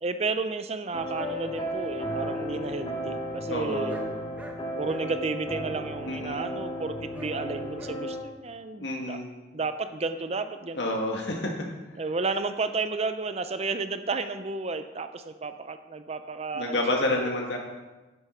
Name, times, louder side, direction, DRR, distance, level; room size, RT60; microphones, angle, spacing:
voice 1, 0.0-3.9 4.8-9.2 9.5-10.8 12.0-16.8 17.1-17.2, right 3 dB, 35° right, 10 dB, 0.6 m, -32 dB
sound 1, 0.9-8.2, equal, 30° left, 1.8 m, -34 dB
voice 2, 3.5-4.0 6.0-6.4 8.8-9.3 10.7-11.5 11.9-12.0 16.5-17.6, left 1 dB, 80° left, 0 dB, 1.8 m, -29 dB
sound 2, 3.8-4.1 4.3-4.6 4.8-5.1 7.1-7.3 7.7-7.9, left 1 dB, 10° right, 1.1 m, -45 dB
9.9 x 7.9 x 5.7 m, 1.1 s
head